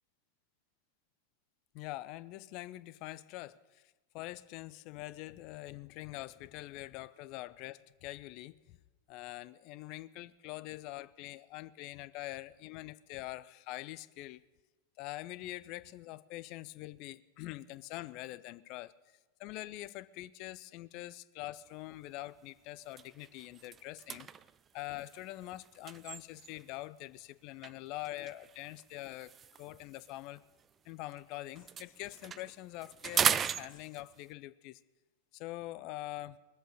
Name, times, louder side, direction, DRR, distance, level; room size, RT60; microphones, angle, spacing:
voice 1, 1.7-8.8 9.1-14.4 15.0-18.9 19.4-24.3 24.7-30.4 30.8-34.8 35.3-36.4, left 17 dB, 40° left, 16 dB, 0.5 m, -44 dB
sound 1, 21.7-21.9 22.3-22.5 22.8-26.8 27.6-31.2 31.5-34.3, right 7 dB, 25° right, 0.4 m, -38 dB
20.5 x 7.9 x 6.7 m, 1.2 s
figure-of-eight pair, 90°, 0 cm